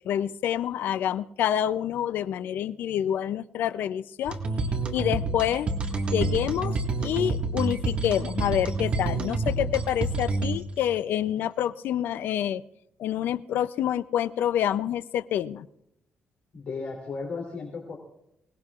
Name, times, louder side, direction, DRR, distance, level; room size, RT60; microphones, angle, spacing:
voice 1, 0.1-4.4 4.9-5.7 6.1-12.6 13.0-15.7, left 10 dB, 75° left, 15 dB, 0.5 m, -27 dB
sound 1, 4.3-10.9, right 3 dB, 35° right, 1.7 m, -28 dB
voice 2, 16.5-18.0, left 4 dB, 45° left, -1 dB, 3.1 m, -35 dB
25.5 x 18.5 x 2.4 m, 0.78 s
cardioid pair, 165°, 3 cm